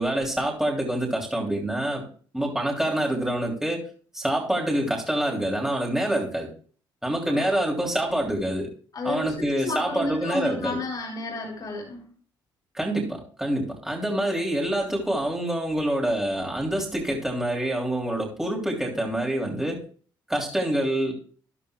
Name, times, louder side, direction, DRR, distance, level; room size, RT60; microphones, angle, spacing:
voice 1, 0.0-2.1 2.3-6.5 7.0-8.7 9.0-10.8 12.7-19.8 20.3-21.1, right 1 dB, 5° right, -2 dB, 3.1 m, -26 dB
voice 2, 8.9-12.1, left 3 dB, 45° left, -1 dB, 4.2 m, -32 dB
13.0 x 11.0 x 2.4 m, 0.43 s
supercardioid pair, 75°, 9 cm